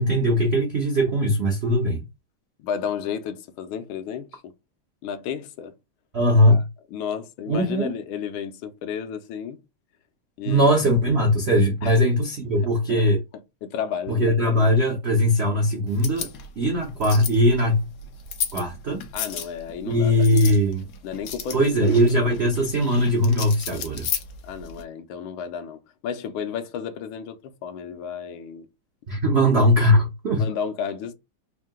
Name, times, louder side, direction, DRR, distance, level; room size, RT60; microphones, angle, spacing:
voice 1, 0.0-2.0 6.1-6.7 7.5-7.9 10.5-13.2 14.1-16.3 16.6-17.9 18.5-19.0 19.9-20.8 21.5-24.1 29.1-30.4, equal, 70° right, 0.6 m, -20 dB
voice 2, 2.6-4.5 5.0-5.7 6.5-6.6 6.9-9.6 10.4-10.9 11.8-12.0 12.6-13.1 13.6-14.3 19.1-20.3 21.0-22.0 22.2-22.3 24.4-28.7 30.3-31.1, left 7 dB, 80° left, 1.5 m, -32 dB
sound 1, 15.9-24.8, left 7 dB, 65° left, 1.0 m, -35 dB
3.7 x 2.7 x 3.6 m
omnidirectional pair, 2.3 m